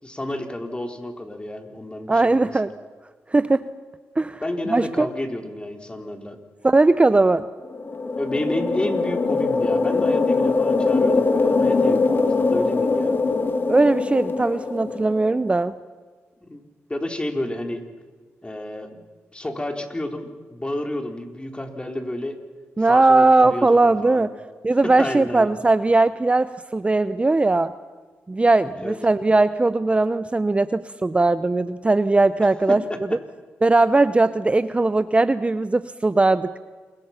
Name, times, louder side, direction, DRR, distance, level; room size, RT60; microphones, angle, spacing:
voice 1, 0.0-2.5 4.4-6.4 8.2-13.2 16.5-16.6 16.9-17.8 18.4-19.0 19.3-22.4 22.8-24.3 25.0-25.5 28.8-29.0 32.9-33.0, left 1 dB, 20° left, 4 dB, 3.8 m, -30 dB
voice 2, 2.1-2.7 3.3-3.7 4.2-4.4 4.7-5.1 6.6-7.5 13.7-15.7 22.8-24.3 24.6-27.7 28.3-32.8 33.6-36.5, right 2 dB, 25° right, 14 dB, 0.7 m, -19 dB
sound 1, 7.7-15.3, left 3 dB, 45° left, 2.1 m, -22 dB
27.5 x 23.0 x 5.8 m, 1.4 s
cardioid pair, 60°, 5 cm